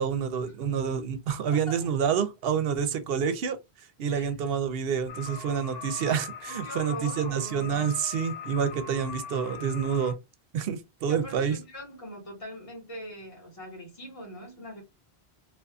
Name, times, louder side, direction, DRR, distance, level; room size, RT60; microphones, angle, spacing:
voice 1, 0.0-3.6 4.0-10.1 10.5-11.6, right 7 dB, 70° right, 0.7 m, -28 dB
voice 2, 1.5-1.9 4.1-4.3 6.4-7.9 11.1-14.8, left 1 dB, 35° left, 1.2 m, -42 dB
sound 1, 5.1-10.1, left 6 dB, 75° left, 0.9 m, -41 dB
2.5 x 2.4 x 2.3 m
omnidirectional pair, 1.1 m